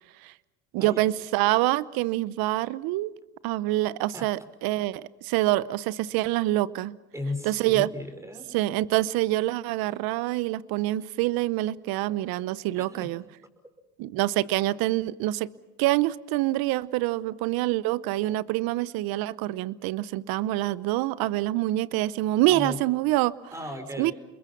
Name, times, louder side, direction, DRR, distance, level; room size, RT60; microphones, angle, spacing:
voice 1, 0.7-3.1 3.4-7.0 7.4-7.9 8.5-13.2 14.0-15.5 15.8-23.5 24.0-24.1, right 16 dB, 60° right, 19 dB, 0.9 m, -26 dB
voice 2, 7.1-8.5 12.8-13.1 22.5-22.8 23.5-24.1, left 2 dB, 5° right, 6 dB, 5.1 m, -35 dB
29.5 x 21.5 x 5.9 m, 1.1 s
supercardioid pair, 100°, 41 cm